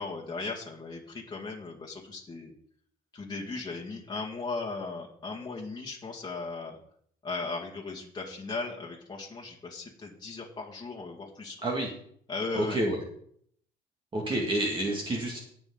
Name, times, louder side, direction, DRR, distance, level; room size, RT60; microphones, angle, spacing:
voice 1, 0.0-2.5 3.1-6.8 7.2-11.6 12.3-12.8, left 3 dB, 25° left, -2 dB, 2.0 m, -37 dB
voice 2, 12.5-13.0 14.1-15.4, right 1 dB, 30° right, -1 dB, 2.3 m, -29 dB
17.5 x 6.1 x 3.9 m, 0.64 s
cardioid pair, 110°, 17 cm